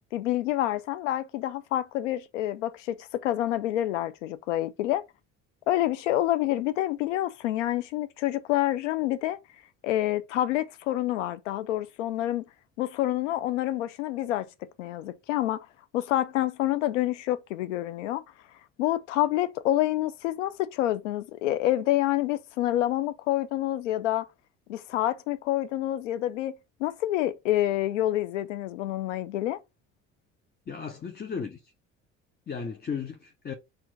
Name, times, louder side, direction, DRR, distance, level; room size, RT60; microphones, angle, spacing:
voice 1, 0.1-5.0 5.7-9.4 9.8-12.5 12.8-14.5 14.8-15.7 15.9-18.2 18.8-24.3 24.7-26.5 26.8-29.6, left 14 dB, 80° left, 0.5 m, -27 dB
voice 2, 30.7-31.7 32.5-33.5, left 6 dB, 25° left, 0.8 m, -35 dB
4.4 x 2.5 x 3.9 m
hypercardioid pair, 55°, 36 cm